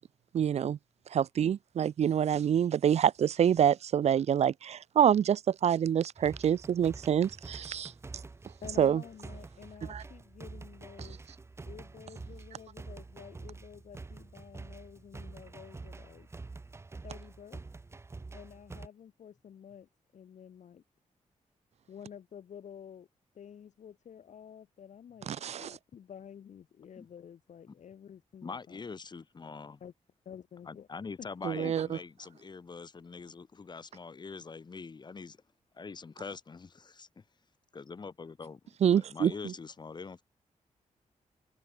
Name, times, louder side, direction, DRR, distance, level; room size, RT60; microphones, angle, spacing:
voice 1, 0.3-0.8 1.1-7.9 8.8-9.0 9.9-10.0 25.3-25.8 31.4-31.9 38.8-39.5, right 9 dB, 55° right, 0.5 m, -26 dB
sound 1, 6.2-18.9, right 3 dB, 20° right, 0.8 m, -47 dB
voice 2, 8.6-11.2 11.7-16.3 17.0-17.6 18.3-20.8 21.9-23.1 23.3-28.9 29.8-29.9 30.3-30.9 31.2-31.3 31.6-31.7, left 8 dB, 70° left, 2.4 m, -50 dB
voice 3, 28.4-29.8 30.7-35.4 35.7-37.2 37.7-40.2, left 4 dB, 35° left, 3.7 m, -44 dB
wide cardioid pair, 150°, 13 cm